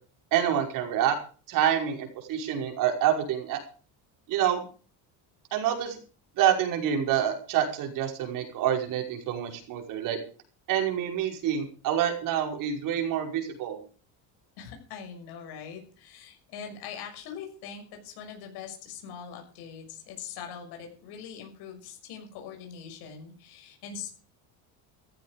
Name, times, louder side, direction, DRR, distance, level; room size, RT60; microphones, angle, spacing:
voice 1, 0.3-1.2 1.5-3.6 4.3-4.6 5.5-6.0 6.4-10.2 10.7-13.8, right 10 dB, 55° right, 3 dB, 5.5 m, -27 dB
voice 2, 14.6-24.1, left 7 dB, 70° left, 3 dB, 6.5 m, -42 dB
15.0 x 15.0 x 5.1 m, 0.39 s
cardioid pair, 175°, 40 cm